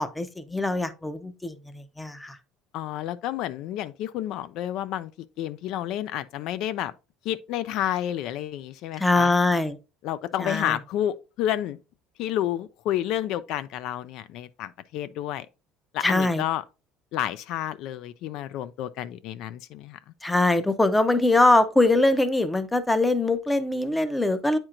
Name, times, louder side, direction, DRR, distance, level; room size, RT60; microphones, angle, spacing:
voice 1, 0.0-2.4 9.0-9.8 10.4-10.8 16.0-16.4 20.2-24.6, left 2 dB, 5° left, 0.6 m, -22 dB
voice 2, 2.7-5.1 5.4-6.9 7.3-9.3 10.0-11.8 12.2-15.5 15.9-16.6 17.1-20.0, left 12 dB, 60° left, 0.3 m, -30 dB
8.8 x 4.4 x 2.4 m
cardioid pair, 150°, 0 cm